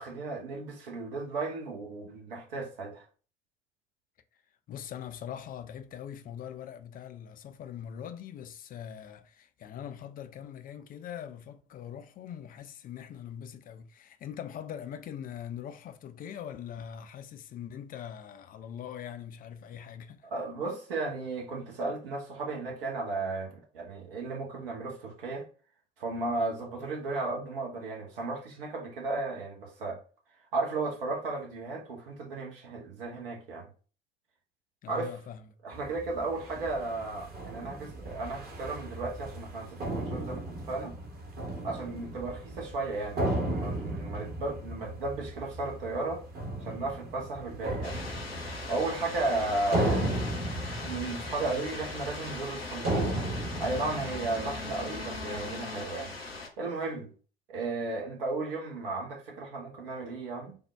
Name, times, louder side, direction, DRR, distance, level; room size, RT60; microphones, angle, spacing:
voice 1, 0.0-3.0 20.3-25.5 26.0-30.0 30.5-33.7 34.9-35.1 35.6-40.9 41.6-46.2 46.6-48.0 48.7-50.2 50.8-53.1 53.6-56.1 56.6-57.1 57.5-60.6, right 3 dB, 70° right, 0.8 m, -34 dB
voice 2, 4.7-20.3 34.8-35.5 36.6-36.7, left 9 dB, 30° left, 0.4 m, -42 dB
sound 1, 35.7-55.6, right 1 dB, 30° right, 0.9 m, -36 dB
sound 2, 47.8-56.5, left 3 dB, 90° left, 0.5 m, -40 dB
3.4 x 2.1 x 3.3 m
figure-of-eight pair, 55°, 29 cm